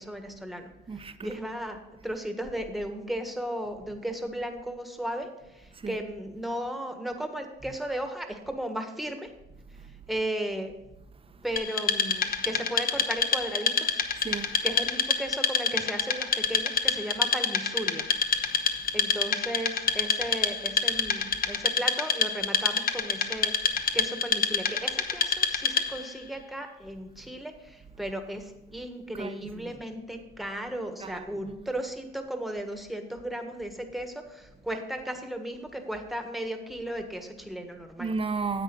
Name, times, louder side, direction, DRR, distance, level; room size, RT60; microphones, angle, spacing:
voice 1, 0.0-0.7 1.2-1.8 2.0-9.3 10.1-10.7 11.4-14.0 14.6-18.1 18.9-38.1, right 1 dB, ahead, 1.5 m, -35 dB
voice 2, 0.9-1.3 5.7-6.0 14.2-14.6 18.5-18.6 29.2-29.7 31.0-31.5 38.0-38.6, right 4 dB, 30° right, 0.8 m, -34 dB
Wood, 11.6-26.1, left 6 dB, 50° left, 1.0 m, -27 dB
10.0 x 7.9 x 3.8 m
cardioid pair, 90°, 20 cm